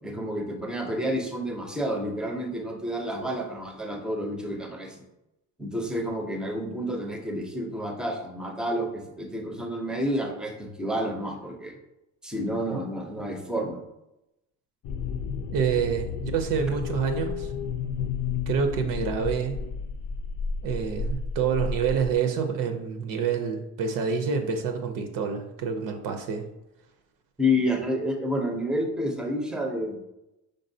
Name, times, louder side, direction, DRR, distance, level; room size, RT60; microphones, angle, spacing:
voice 1, 0.0-5.0 5.6-11.8 12.2-13.8 15.8-15.9 27.4-30.0, equal, ahead, 2 dB, 0.5 m, -29 dB
sound 1, 14.8-22.1, left 5 dB, 75° left, 0.5 m, -32 dB
voice 2, 15.5-17.5 18.5-19.6 20.6-26.5, right 6 dB, 65° right, 5 dB, 0.6 m, -27 dB
5.2 x 3.7 x 2.7 m, 0.91 s
cardioid pair, 160°, 35 cm